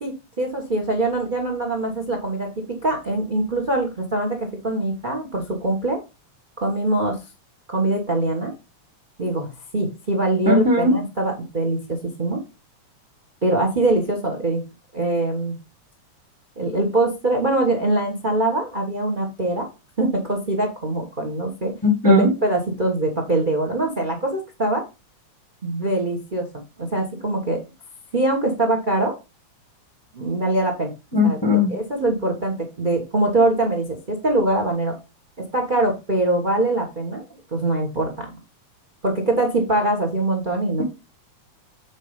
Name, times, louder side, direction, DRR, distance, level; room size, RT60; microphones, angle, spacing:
voice 1, 0.0-6.0 6.6-7.2 7.7-8.5 9.2-9.5 9.7-12.4 13.4-14.6 14.9-15.6 16.6-19.7 20.0-21.7 22.0-24.8 25.6-26.5 26.8-27.6 28.1-29.1 30.1-30.9 31.2-31.4 31.7-35.0 35.4-37.2 37.5-38.3 39.0-40.8, right 2 dB, 40° right, 0.6 m, -23 dB
voice 2, 10.4-11.0 21.8-22.3 31.1-31.8, left 2 dB, 20° left, 0.7 m, -17 dB
7.4 x 4.2 x 5.1 m
omnidirectional pair, 3.4 m